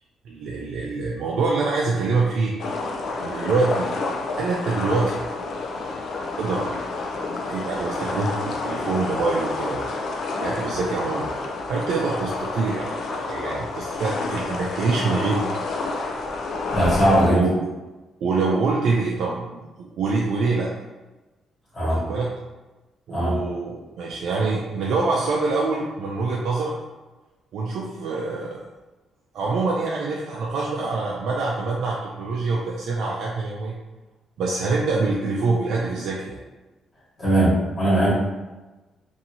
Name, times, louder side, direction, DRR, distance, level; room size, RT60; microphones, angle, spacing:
voice 1, 0.3-2.5 3.1-4.0 4.4-5.2 6.4-6.7 7.5-9.9 10.4-12.9 13.3-15.5 17.2-17.6 18.2-20.7 21.8-22.3 23.1-26.7 27.5-28.6 29.3-33.7 34.4-36.4, right 3 dB, 75° right, -3 dB, 0.4 m, -25 dB
sound 1, 2.6-17.3, left 3 dB, 65° left, 0.4 m, -29 dB
voice 2, 16.7-17.4 21.7-22.0 23.1-23.4 37.2-38.1, right 1 dB, 30° left, -9 dB, 1.4 m, -19 dB
2.7 x 2.6 x 2.7 m, 1.1 s
cardioid pair, 90°, 0 cm